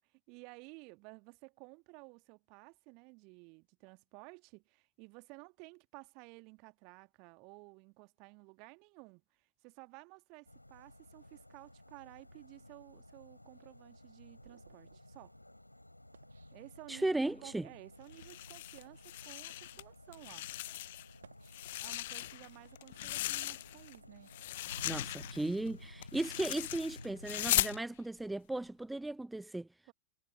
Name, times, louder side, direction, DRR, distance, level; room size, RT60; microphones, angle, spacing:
voice 1, 0.0-15.3 16.5-20.5 21.8-24.3 26.4-26.6 29.9-30.0, right 31 dB, 45° right, 1.6 m, -55 dB
sound 1, 10.5-27.8, left 1 dB, 85° left, 4.5 m, -54 dB
sound 2, 13.5-17.3 17.9-18.1 18.6-19.2 19.9-20.1 21.0-22.1 22.6-25.2, right 7 dB, 70° right, 1.6 m, -66 dB
voice 2, 16.9-17.7 24.8-29.7, right 2 dB, 5° right, 0.5 m, -36 dB
sound 3, 18.1-19.8 20.1-21.1 21.5-23.9 24.3-27.8, left 16 dB, 55° left, 0.4 m, -38 dB
figure-of-eight pair, 90°, 0 cm